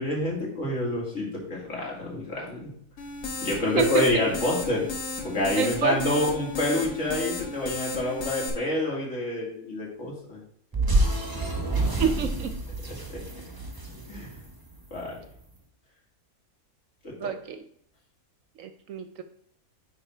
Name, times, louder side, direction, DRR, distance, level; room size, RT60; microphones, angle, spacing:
voice 1, 0.0-2.7 3.4-4.9 5.2-10.4 13.1-13.2 14.1-14.3 14.9-15.2 17.0-17.3, left 1 dB, 55° left, -3 dB, 2.6 m, -28 dB
sound 1, 3.0-8.5, left 3 dB, 70° left, 1.8 m, -34 dB
voice 2, 5.5-6.0 12.0-12.5 17.2-17.6 18.6-19.2, right 6 dB, 70° right, 9 dB, 0.9 m, -27 dB
sound 2, 10.7-15.1, right 2 dB, 15° right, 0.9 m, -28 dB
9.5 x 3.7 x 4.4 m, 0.67 s
omnidirectional pair, 1.6 m